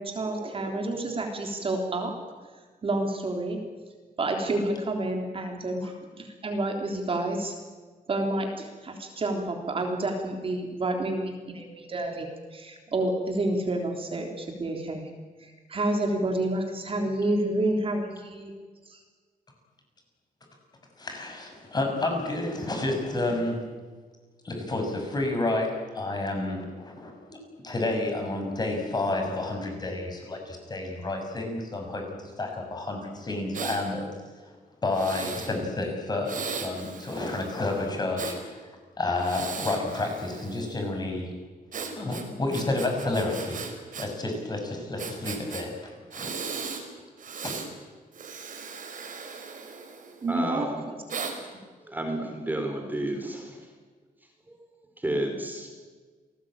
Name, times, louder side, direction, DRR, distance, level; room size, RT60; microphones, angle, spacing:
voice 1, 0.0-2.1 2.8-3.6 4.2-7.5 8.1-15.1 15.4-18.5 18.8-19.0 50.2-51.0, right 2 dB, 35° right, 2 dB, 3.5 m, -29 dB
voice 2, 21.0-23.6 24.4-27.4 27.6-34.1 34.4-34.5 34.8-38.5 39.0-41.3 42.0-43.7 44.0-46.3 47.4-47.5, left 2 dB, 25° left, 3 dB, 6.3 m, -30 dB
Breathing, 33.5-33.8 34.9-35.6 36.3-38.4 39.2-40.8 41.7-44.1 44.3-44.4 45.0-45.6 46.1-46.8 47.2-47.7 48.1-50.3 51.1-51.4, right 5 dB, 55° right, 4.7 m, -37 dB
voice 3, 50.3-50.8 51.8-53.7 54.5-54.6 55.0-55.7, right 1 dB, 10° right, 4 dB, 4.2 m, -31 dB
28.5 x 19.5 x 8.9 m, 1.4 s
wide cardioid pair, 160°, 16 cm